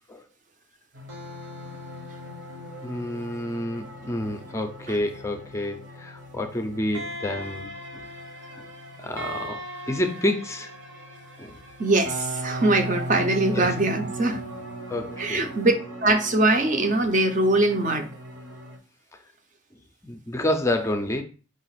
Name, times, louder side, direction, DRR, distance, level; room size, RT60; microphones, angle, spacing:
sound 1, 0.9-18.8, right 1 dB, 60° right, 1.1 m, -38 dB
voice 1, 2.8-8.0 8.5-8.7 9.0-10.7 11.4-11.6 13.5-13.7 14.9-15.5 20.0-21.2, left 1 dB, 15° left, 5 dB, 0.4 m, -29 dB
voice 2, 11.8-14.4 15.2-15.7 16.0-18.1, right 2 dB, 35° right, 6 dB, 0.6 m, -22 dB
5.0 x 2.4 x 4.0 m, 0.36 s
head